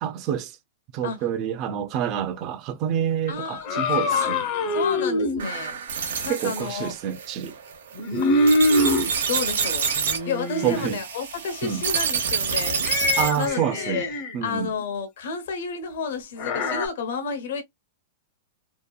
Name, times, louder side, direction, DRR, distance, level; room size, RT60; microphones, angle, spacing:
voice 1, 0.0-0.6 0.9-4.4 6.3-7.5 10.6-11.0 11.6-11.8 13.2-14.0 14.3-14.7, right 9 dB, 30° right, 0.4 m, -27 dB
voice 2, 3.3-4.3 4.7-5.8 6.2-6.9 8.2-8.4 9.3-9.8 10.3-12.8 13.4-14.1 14.4-17.6, left 5 dB, 65° left, 0.9 m, -31 dB
sound 1, 3.6-5.5 7.9-9.1 10.0-10.9 12.8-14.4 16.4-16.9, left 2 dB, 35° left, 0.7 m, -24 dB
sound 2, 5.4-13.5, right 6 dB, 85° right, 0.9 m, -28 dB
2.8 x 2.3 x 2.2 m
supercardioid pair, 160°, 0 cm